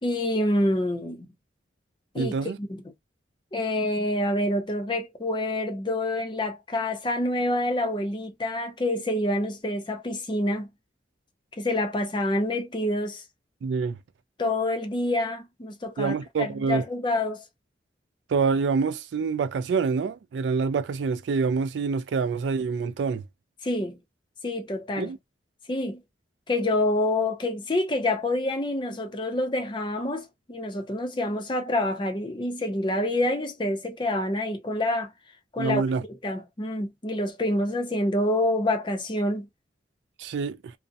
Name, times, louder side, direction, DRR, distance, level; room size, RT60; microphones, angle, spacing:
voice 1, 0.0-1.3 2.1-2.8 3.5-10.7 11.6-13.2 14.4-17.4 23.6-24.0 24.4-25.1 25.7-26.0 26.5-35.1 35.5-35.8 36.1-39.5, left 1 dB, 25° left, 0.5 m, -27 dB
voice 2, 2.2-2.6 13.6-14.0 16.0-16.8 18.3-23.2 25.0-25.2 35.6-36.0 40.2-40.7, right 5 dB, 75° right, 0.3 m, -26 dB
2.5 x 2.0 x 2.5 m
head